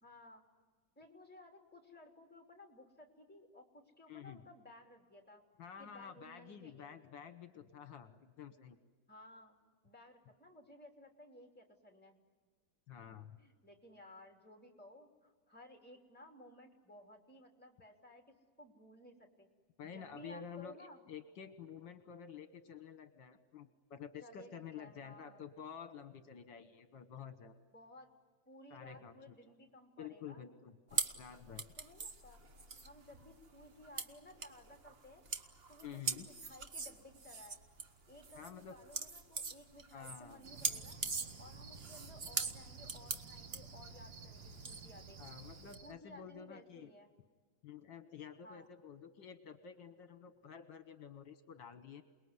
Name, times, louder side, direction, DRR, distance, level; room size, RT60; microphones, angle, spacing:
voice 1, 0.0-0.4 0.9-5.4 5.8-6.9 9.1-12.2 13.4-19.5 19.9-21.0 24.2-25.4 27.7-28.1 28.5-30.4 30.9-31.0 31.8-32.4 32.8-35.2 35.7-37.6 38.1-41.0 41.4-45.2 45.8-47.1 48.4-48.7, left 1 dB, 5° left, 2 dB, 3.1 m, -57 dB
voice 2, 4.1-4.4 5.6-8.8 12.9-13.4 19.8-27.5 28.7-29.4 30.0-31.7 35.8-36.3 38.4-38.7 39.9-40.4 45.2-46.9 47.6-52.0, left 7 dB, 70° left, 10 dB, 1.8 m, -50 dB
sound 1, 30.9-45.8, right 4 dB, 35° right, 1.1 m, -42 dB
Cricket, 40.4-45.9, right 4 dB, 70° right, 2.3 m, -52 dB
28.5 x 20.5 x 9.6 m, 1.4 s
omnidirectional pair, 2.1 m